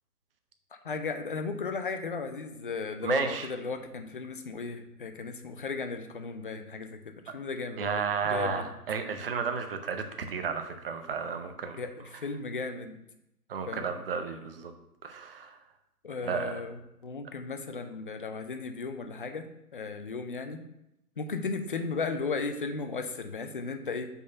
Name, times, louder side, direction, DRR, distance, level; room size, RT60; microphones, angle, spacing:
voice 1, 0.8-8.7 11.8-13.0 13.7-13.9 16.0-19.5 19.7-20.6 21.2-24.1, left 4 dB, 35° left, 7 dB, 0.4 m, -35 dB
voice 2, 3.0-3.5 7.3-7.4 7.8-11.8 13.5-14.7 15.0-15.6 16.2-16.6, right 6 dB, 40° right, 6 dB, 0.7 m, -32 dB
5.4 x 4.1 x 5.6 m, 0.86 s
hypercardioid pair, 145°, 46 cm